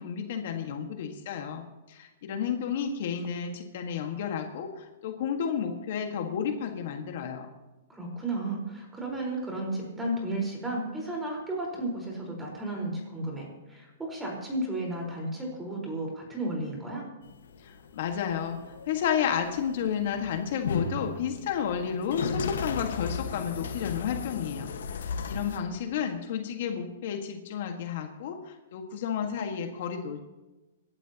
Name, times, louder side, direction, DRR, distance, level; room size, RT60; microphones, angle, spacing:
voice 1, 0.0-7.5 17.6-30.2, left 7 dB, 55° left, 4 dB, 1.7 m, -32 dB
voice 2, 7.9-17.0, right 1 dB, 10° right, -1 dB, 4.5 m, -33 dB
sound 1, 17.2-25.6, left 5 dB, 80° left, 1.5 m, -35 dB
27.0 x 12.0 x 3.0 m, 1.1 s
hypercardioid pair, 150°, 0 cm